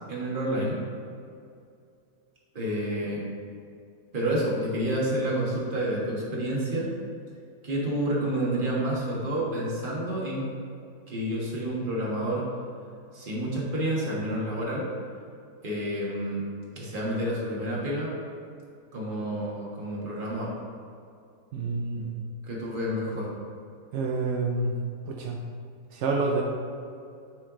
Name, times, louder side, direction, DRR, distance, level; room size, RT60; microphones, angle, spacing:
voice 1, 0.1-0.8 2.5-3.2 4.1-6.9 7.6-10.5 11.1-12.5 13.1-14.9 15.6-16.4 16.7-18.1 18.9-20.5 21.9-22.0 22.5-23.3, right 1 dB, 35° right, -5 dB, 1.4 m, -29 dB
voice 2, 21.5-22.1 23.9-24.7 25.0-25.4 25.9-26.4, right 3 dB, 75° right, 0 dB, 0.6 m, -28 dB
9.1 x 3.2 x 3.7 m, 2.5 s
omnidirectional pair, 1.8 m